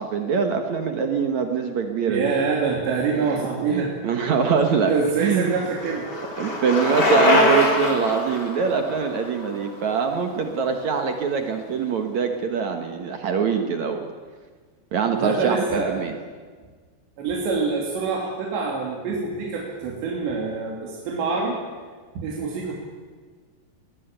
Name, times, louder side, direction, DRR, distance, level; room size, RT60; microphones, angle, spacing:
voice 1, 0.0-2.3 3.3-4.9 5.2-5.5 6.4-14.1 14.9-16.1, right 6 dB, 60° right, 5 dB, 1.9 m, -24 dB
voice 2, 2.1-3.9 4.9-6.1 15.1-16.0 17.2-21.6 22.1-22.7, right 4 dB, 90° right, -2 dB, 5.1 m, -25 dB
Bicycle, 4.7-10.7, left 1 dB, 25° left, 3.8 m, -23 dB
21.0 x 19.5 x 9.1 m, 1.5 s
omnidirectional pair, 4.9 m